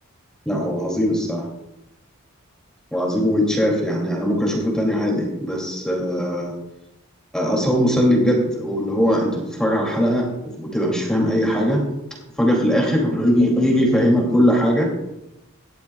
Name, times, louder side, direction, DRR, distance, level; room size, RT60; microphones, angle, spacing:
voice 1, 0.5-1.4 2.9-6.5 7.3-10.3 10.6-11.9 12.4-14.9, equal, 5° left, -1 dB, 2.5 m, -20 dB
18.0 x 12.0 x 2.3 m, 0.90 s
head